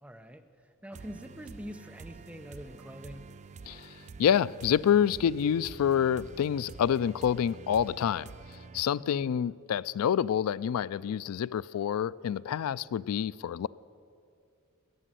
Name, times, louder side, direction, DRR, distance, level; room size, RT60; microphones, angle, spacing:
voice 1, 0.0-3.3 9.0-9.3, equal, 5° right, 0.7 m, -45 dB
sound 1, 0.9-8.8, right 4 dB, 30° right, 0.3 m, -47 dB
voice 2, 3.7-8.3 8.7-13.7, left 8 dB, 85° left, 0.3 m, -27 dB
13.5 x 10.0 x 9.8 m
head